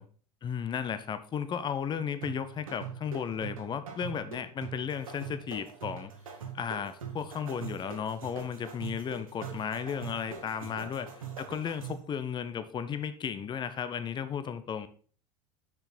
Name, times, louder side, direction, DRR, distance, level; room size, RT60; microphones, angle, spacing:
voice 1, 0.4-6.1 6.5-14.9, left 7 dB, 25° left, 12 dB, 0.7 m, -34 dB
sound 1, 2.2-12.1, right 7 dB, 75° right, 1.7 m, -43 dB
6.5 x 6.0 x 4.1 m, 0.43 s
figure-of-eight pair, 75°, 18 cm